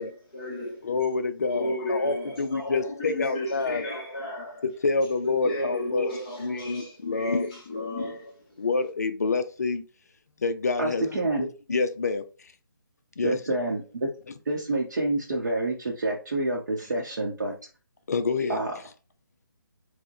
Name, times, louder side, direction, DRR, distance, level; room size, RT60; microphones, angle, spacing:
voice 1, 0.0-0.9 1.5-4.6 5.2-8.6, left 1 dB, 15° left, 0.9 m, -34 dB
voice 2, 0.8-3.8 4.8-6.1 6.4-7.9 8.6-9.8 10.4-11.0 11.4-12.2 13.2-13.4 18.1-18.6, left 4 dB, 45° left, 0.4 m, -27 dB
voice 3, 10.8-11.5 13.2-14.1 14.5-17.5 18.5-18.7, right 2 dB, 45° right, 0.7 m, -28 dB
4.4 x 2.1 x 2.6 m
figure-of-eight pair, 145°, 12 cm